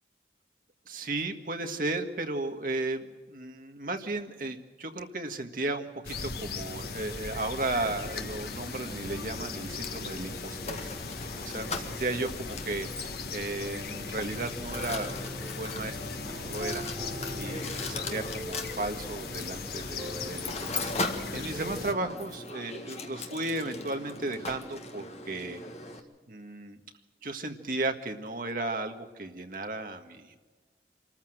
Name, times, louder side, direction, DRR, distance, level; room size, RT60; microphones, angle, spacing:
voice 1, 0.8-11.2 11.5-16.0 16.3-16.9 17.3-25.6 26.3-26.8 27.2-30.5, right 2 dB, 50° right, 5 dB, 1.7 m, -35 dB
sound 1, 6.0-21.9, left 4 dB, 60° left, 1.3 m, -39 dB
Mechanisms, 7.8-26.0, left 3 dB, 35° left, 1.7 m, -40 dB
sound 2, 13.6-22.2, equal, 15° right, 4.2 m, -42 dB
25.5 x 14.0 x 7.8 m, 1.4 s
head